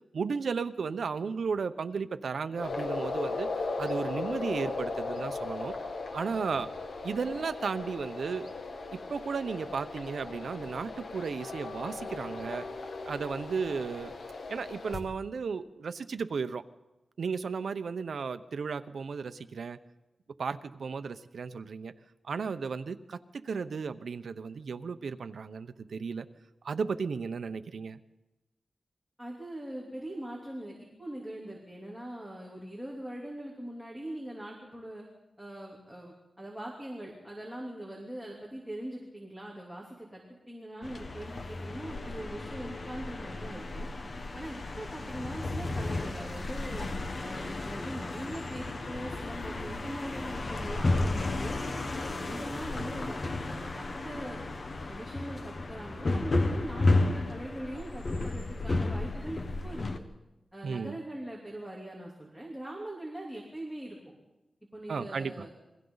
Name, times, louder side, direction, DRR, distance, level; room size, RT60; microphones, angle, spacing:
voice 1, 0.1-5.7 6.1-6.7 7.0-8.5 8.9-12.6 13.0-14.2 14.5-16.6 17.2-19.8 20.4-21.9 22.2-26.3 26.6-28.0 60.6-61.0 64.9-65.5, right 5 dB, 75° right, 11 dB, 0.9 m, -34 dB
sound 1, 2.6-15.0, left 3 dB, 85° left, 2.0 m, -37 dB
voice 2, 29.2-35.0 35.4-43.9 44.3-46.9 47.2-51.6 52.0-54.4 54.9-59.9 60.5-64.0 64.7-65.5, right 1 dB, ahead, -3 dB, 3.2 m, -42 dB
sound 2, 40.8-60.0, left 2 dB, 40° left, 1.2 m, -33 dB
29.0 x 22.5 x 4.0 m, 1.0 s
wide cardioid pair, 170°, 0 cm